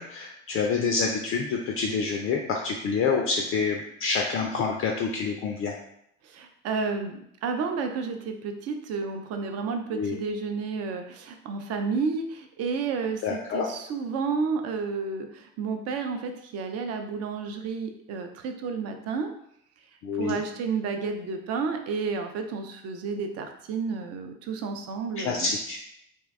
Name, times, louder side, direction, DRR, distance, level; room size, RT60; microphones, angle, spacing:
voice 1, 0.0-5.7 9.9-10.2 13.2-13.7 20.0-20.4 25.2-25.8, left 5 dB, 35° left, 1 dB, 0.4 m, -27 dB
voice 2, 6.2-19.3 20.1-25.5, right 5 dB, 40° right, 5 dB, 0.5 m, -31 dB
2.6 x 2.2 x 3.3 m, 0.73 s
figure-of-eight pair, 55°, 39 cm